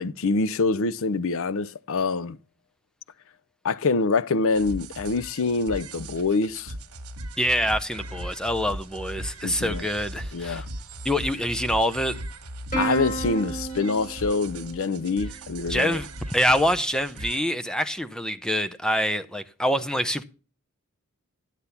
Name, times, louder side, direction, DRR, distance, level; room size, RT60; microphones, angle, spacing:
voice 1, 0.0-2.4 3.6-6.7 9.4-9.9 10.3-10.6 12.8-16.0, left 4 dB, 65° left, 0.6 m, -25 dB
sound 1, 4.5-17.4, right 1 dB, 75° right, 1.5 m, -38 dB
voice 2, 7.4-10.6 11.0-12.2 15.7-20.2, equal, 5° left, 0.6 m, -25 dB
Plucked string instrument, 12.7-15.5, right 3 dB, 35° left, 5.2 m, -32 dB
11.5 x 8.2 x 5.8 m
head